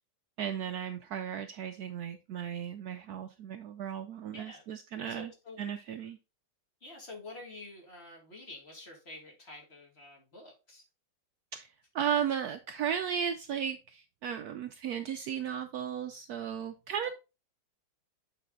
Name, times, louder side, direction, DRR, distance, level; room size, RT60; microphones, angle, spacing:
voice 1, 0.4-5.3 5.6-6.2 11.5-17.1, right 8 dB, 70° right, 0.9 m, -35 dB
voice 2, 4.3-4.6 5.1-5.6 6.8-10.8 17.0-17.1, left 2 dB, 35° left, 2.1 m, -48 dB
8.2 x 4.2 x 3.7 m
omnidirectional pair, 2.0 m